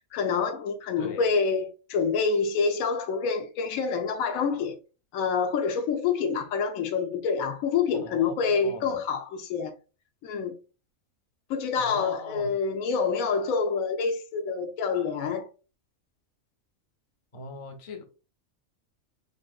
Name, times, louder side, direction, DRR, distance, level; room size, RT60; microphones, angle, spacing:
voice 1, 0.1-4.8 5.1-9.7 10.2-10.5 11.5-15.5, left 5 dB, 85° left, 1.1 m, -27 dB
voice 2, 1.0-1.3 7.9-9.0 11.7-12.5 17.3-18.0, left 3 dB, 45° left, 0.4 m, -40 dB
3.7 x 2.6 x 2.3 m
omnidirectional pair, 1.4 m